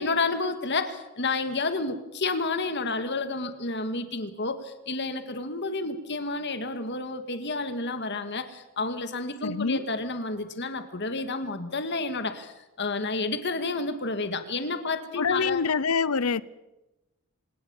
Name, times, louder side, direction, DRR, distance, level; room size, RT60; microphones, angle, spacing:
voice 1, 0.0-15.6, left 3 dB, 50° left, 2.0 m, -30 dB
voice 2, 9.4-9.8 15.2-16.4, left 5 dB, 85° left, 0.8 m, -25 dB
26.5 x 18.0 x 7.2 m
head